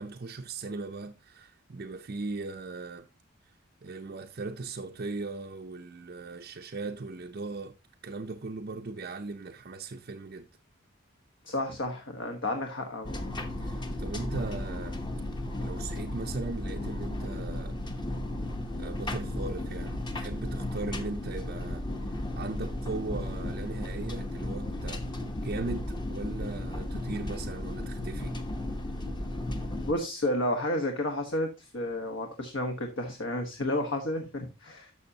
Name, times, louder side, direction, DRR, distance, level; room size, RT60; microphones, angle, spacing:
voice 1, 0.0-3.1 3.8-7.8 8.0-10.5 13.6-15.0 15.6-17.8 18.7-25.0 25.4-28.4, right 3 dB, 45° right, 0.5 m, -38 dB
voice 2, 11.4-13.2 29.8-34.9, left 1 dB, 60° left, 1.3 m, -31 dB
sound 1, 13.0-29.9, left 1 dB, 20° left, 1.0 m, -34 dB
12.0 x 6.7 x 2.8 m
head